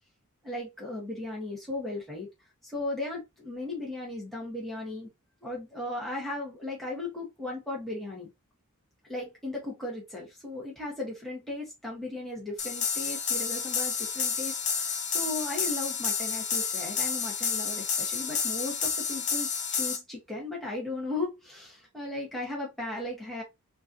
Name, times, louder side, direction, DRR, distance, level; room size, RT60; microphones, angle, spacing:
voice 1, 0.4-2.3 2.6-5.1 5.4-8.3 9.1-23.4, left 2 dB, ahead, 1.1 m, -36 dB
sound 1, 12.6-20.0, left 6 dB, 35° left, 0.7 m, -30 dB
3.9 x 2.5 x 2.6 m
head